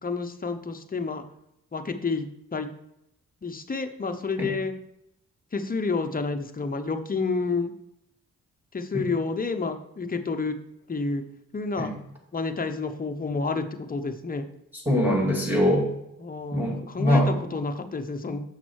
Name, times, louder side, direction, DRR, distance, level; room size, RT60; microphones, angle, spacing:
voice 1, 0.0-1.2 1.7-2.3 2.5-2.7 3.4-4.7 5.5-7.7 8.7-10.6 10.9-11.2 11.5-11.9 12.3-14.4 16.2-18.4, left 4 dB, 25° left, 6 dB, 0.9 m, -29 dB
voice 2, 14.9-15.9 16.5-17.3, left 1 dB, 5° right, -3 dB, 2.4 m, -23 dB
7.4 x 6.0 x 4.6 m, 0.80 s
cardioid pair, 80°, 32 cm